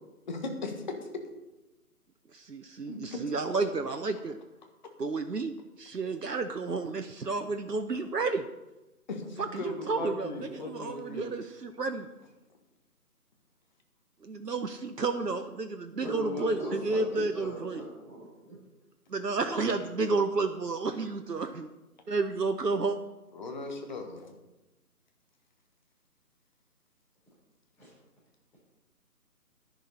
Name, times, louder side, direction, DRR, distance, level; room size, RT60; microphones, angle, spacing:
voice 1, 0.3-0.7 2.9-3.0 9.1-11.4 19.5-19.9 23.3-24.3, left 2 dB, 30° left, 4 dB, 1.5 m, -38 dB
voice 2, 2.3-4.4 5.0-8.5 9.4-12.1 14.2-17.8 19.1-21.7 22.1-23.0, right 3 dB, 85° right, 8 dB, 0.9 m, -31 dB
voice 3, 15.9-18.6 27.8-27.9, equal, 5° left, -8 dB, 3.9 m, -38 dB
11.5 x 11.0 x 4.3 m, 1.0 s
figure-of-eight pair, 150°, 47 cm